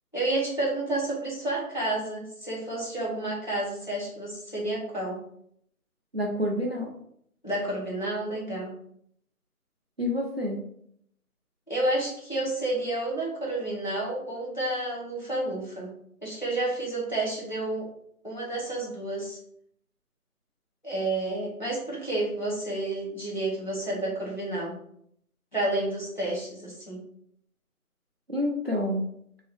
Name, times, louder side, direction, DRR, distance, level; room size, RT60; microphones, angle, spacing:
voice 1, 0.1-5.2 7.4-8.7 11.7-15.9 16.2-17.9 18.2-19.4 20.8-24.8 25.5-27.0, right 2 dB, 30° left, -6 dB, 0.8 m, -30 dB
voice 2, 6.1-6.9 10.0-10.6 28.3-29.0, left 1 dB, 45° right, -1 dB, 0.5 m, -28 dB
2.7 x 2.3 x 3.3 m, 0.70 s
figure-of-eight pair, 175°, 44 cm